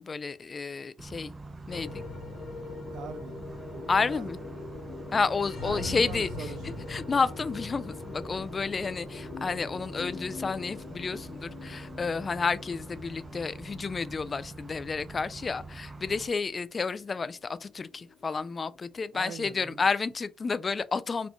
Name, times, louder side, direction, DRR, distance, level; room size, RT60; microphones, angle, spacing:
voice 1, 0.0-1.3 1.7-2.0 3.9-4.4 5.1-6.3 6.9-21.3, left 4 dB, 35° left, 0.3 m, -30 dB
sound 1, 1.0-16.3, right 2 dB, 25° right, 0.5 m, -45 dB
sound 2, 1.7-20.1, left 4 dB, 85° left, 1.4 m, -43 dB
voice 2, 2.9-3.4 3.7-4.7 5.6-6.8 19.1-19.9, right 7 dB, 75° right, 0.5 m, -42 dB
4.1 x 2.2 x 3.0 m
cardioid pair, 90°, 0 cm